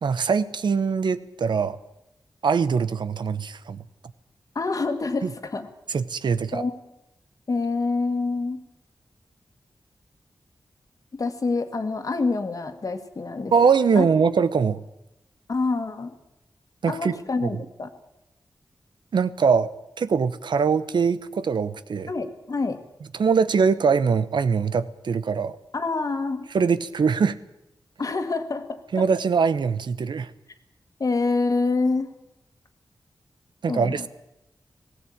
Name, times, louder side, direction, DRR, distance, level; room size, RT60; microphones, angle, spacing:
voice 1, 0.0-1.8 2.4-3.8 5.2-5.3 5.9-6.6 13.5-14.8 16.8-17.1 17.4-17.6 19.1-19.7 20.0-22.1 23.1-25.6 26.5-27.4 28.9-30.3 33.6-34.1, right 5 dB, 80° right, 14 dB, 0.9 m, -22 dB
voice 2, 4.6-5.7 6.5-6.8 7.5-8.6 11.1-13.5 14.0-14.1 15.5-16.2 16.9-17.9 22.1-22.8 25.7-26.5 28.0-28.8 31.0-32.1 33.7-34.1, left 3 dB, 50° left, 8 dB, 1.9 m, -26 dB
18.0 x 17.0 x 8.7 m, 0.88 s
wide cardioid pair, 115°, 8 cm